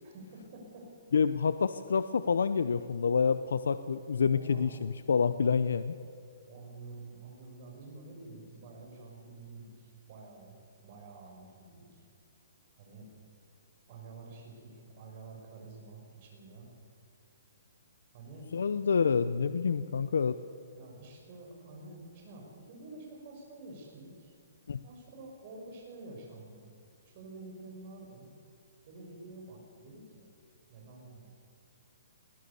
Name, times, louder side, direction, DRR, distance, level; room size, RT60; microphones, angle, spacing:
voice 1, 0.0-0.9 4.3-4.8 6.5-10.6 10.8-12.0 12.8-13.1 13.9-16.7 18.1-18.5 20.7-24.3 24.8-26.7 27.0-28.3 28.9-30.3 30.7-31.3, right 3 dB, 35° right, 0 dB, 6.1 m, -49 dB
voice 2, 1.1-5.9 18.5-20.4 24.7-24.8, left 6 dB, 80° left, 12 dB, 0.7 m, -28 dB
21.5 x 17.5 x 7.0 m, 2.4 s
hypercardioid pair, 165°, 0 cm